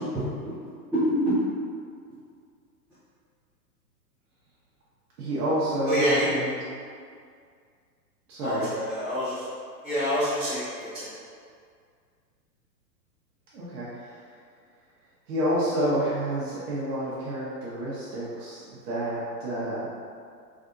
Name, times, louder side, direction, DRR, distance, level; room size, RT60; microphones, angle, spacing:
voice 1, 0.1-1.4 5.9-6.3 8.4-9.5 9.8-11.1, equal, ahead, -19 dB, 0.6 m, -27 dB
voice 2, 5.2-6.6 8.3-8.7 13.5-14.2 15.3-19.9, right 1 dB, 60° right, -9 dB, 1.0 m, -29 dB
3.5 x 2.5 x 2.5 m, 2.2 s
hypercardioid pair, 140°, 49 cm